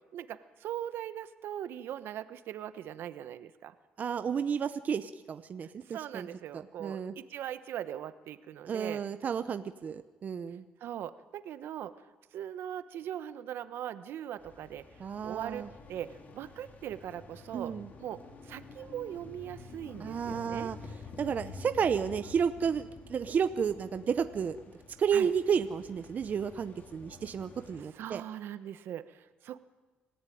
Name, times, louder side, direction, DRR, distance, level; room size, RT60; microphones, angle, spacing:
voice 1, 0.1-3.7 5.9-9.0 10.8-11.9 12.3-14.8 15.2-17.7 18.0-20.7 25.1-25.3 27.8-29.6, right 11 dB, 65° right, 12 dB, 1.1 m, -40 dB
voice 2, 4.0-6.3 6.5-7.1 8.7-10.6 15.0-15.7 17.5-17.9 20.0-20.8 21.2-24.6 25.0-28.2, right 7 dB, 40° right, 10 dB, 0.9 m, -32 dB
sound 1, 14.4-27.8, left 3 dB, 40° left, 3.2 m, -49 dB
26.5 x 15.0 x 9.4 m, 1.3 s
cardioid pair, 110°, 4 cm